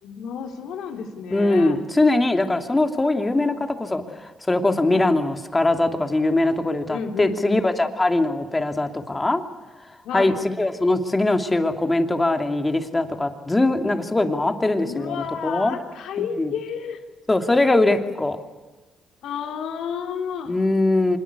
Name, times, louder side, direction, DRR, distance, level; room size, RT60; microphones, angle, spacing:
voice 1, 0.0-1.8 4.9-5.1 6.9-7.6 10.0-10.4 14.8-17.0 19.2-20.6, left 6 dB, 80° left, 4 dB, 3.5 m, -31 dB
voice 2, 1.3-9.4 10.1-15.8 16.4-16.5 17.3-18.4 20.5-21.2, left 2 dB, 15° left, 6 dB, 2.8 m, -21 dB
25.0 x 21.5 x 8.3 m, 1.2 s
cardioid pair, 90°, 0 cm